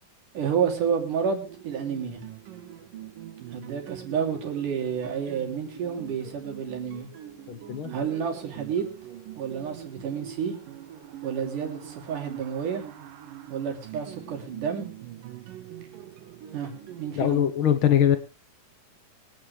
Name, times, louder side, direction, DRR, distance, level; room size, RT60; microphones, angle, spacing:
voice 1, 0.3-2.2 3.5-7.1 7.9-8.9 9.4-10.5 11.2-12.8 13.5-14.9 16.5-16.7 17.0-17.4, right 7 dB, 70° right, 1 dB, 4.5 m, -30 dB
sound 1, 1.4-17.2, right 11 dB, 90° right, 3.0 m, -43 dB
voice 2, 7.5-7.9 17.2-18.2, left 10 dB, 75° left, 9 dB, 1.2 m, -22 dB
23.5 x 9.7 x 3.3 m, 0.30 s
omnidirectional pair, 3.8 m